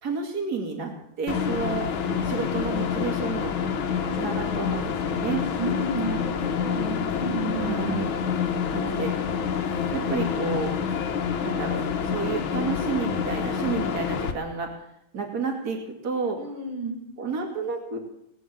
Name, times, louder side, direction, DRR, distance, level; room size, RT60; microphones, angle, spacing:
voice 1, 0.0-1.9 2.2-3.5 4.1-5.4 7.5-8.1 8.7-9.1 9.9-10.7 11.4-14.9 15.1-16.4 17.2-18.0, right 5 dB, 50° right, 2 dB, 2.9 m, -31 dB
sound 1, 1.3-14.3, left 7 dB, 85° left, 2.0 m, -27 dB
voice 2, 5.6-8.1 16.4-17.0, right 3 dB, 80° right, 1 dB, 3.6 m, -32 dB
19.5 x 9.1 x 7.5 m, 0.76 s
omnidirectional pair, 2.2 m